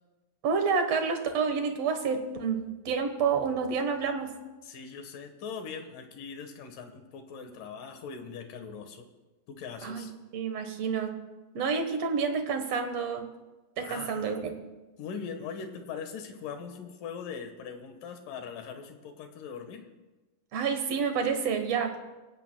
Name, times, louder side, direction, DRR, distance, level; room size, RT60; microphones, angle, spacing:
voice 1, 0.4-4.4 9.8-11.2 11.5-13.3 13.8-14.5 20.5-22.0, right 5 dB, 60° right, 6 dB, 2.0 m, -29 dB
voice 2, 4.6-9.1 9.5-10.1 13.8-14.4 15.0-19.8, left 6 dB, 80° left, 6 dB, 2.9 m, -41 dB
24.0 x 16.5 x 2.2 m, 1.2 s
omnidirectional pair, 3.8 m